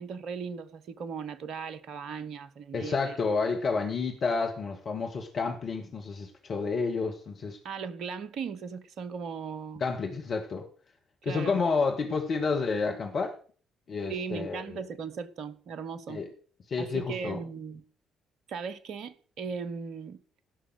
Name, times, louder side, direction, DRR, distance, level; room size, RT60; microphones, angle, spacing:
voice 1, 0.0-3.2 7.6-9.8 11.2-11.6 14.1-16.2 16.8-17.8 18.5-20.2, right 6 dB, 55° right, 1.1 m, -38 dB
voice 2, 2.7-7.6 9.8-10.6 11.2-13.3 13.9-14.8 16.1-16.3 16.7-17.4, left 4 dB, 50° left, 2.0 m, -30 dB
17.0 x 6.2 x 6.4 m
figure-of-eight pair, 45°, 0 cm